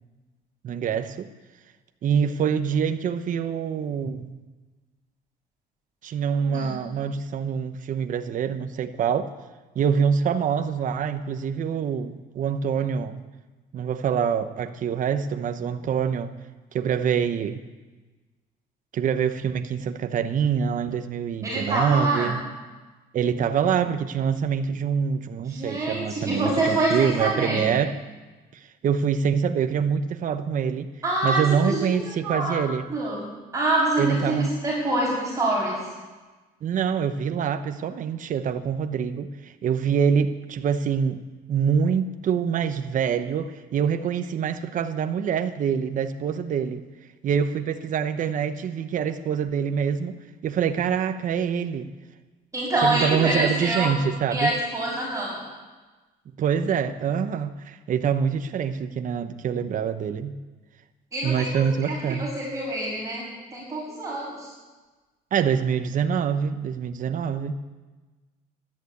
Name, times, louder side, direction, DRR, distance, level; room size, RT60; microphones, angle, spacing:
voice 1, 0.6-1.3 2.0-4.4 6.0-9.3 9.7-13.2 13.7-16.3 16.7-17.6 18.9-22.4 23.1-28.0 28.5-30.9 31.2-32.9 34.0-34.5 36.6-41.2 41.5-46.8 47.2-50.2 50.4-51.9 52.8-54.5 56.4-60.3 61.2-62.3 65.3-67.6, right 7 dB, 50° right, 9 dB, 1.0 m, -25 dB
voice 2, 6.4-6.8 21.4-22.3 25.4-27.7 31.0-32.0 32.2-32.6 32.9-33.3 33.5-35.8 52.5-53.9 54.3-55.4 61.1-63.2 63.5-64.5, right 2 dB, 20° right, -7 dB, 6.6 m, -26 dB
14.0 x 12.0 x 8.6 m, 1.3 s
cardioid pair, 110°, 17 cm